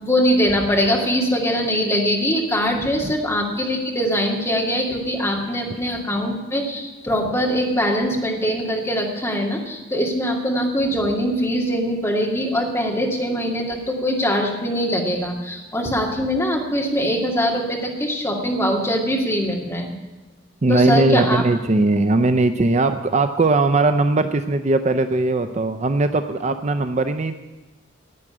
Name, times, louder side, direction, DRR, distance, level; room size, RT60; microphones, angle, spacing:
voice 1, 0.0-19.9 20.7-21.4, equal, 15° left, 0 dB, 2.1 m, -22 dB
voice 2, 20.6-27.3, right 2 dB, 35° right, 9 dB, 0.5 m, -19 dB
11.0 x 9.0 x 9.7 m, 1.2 s
head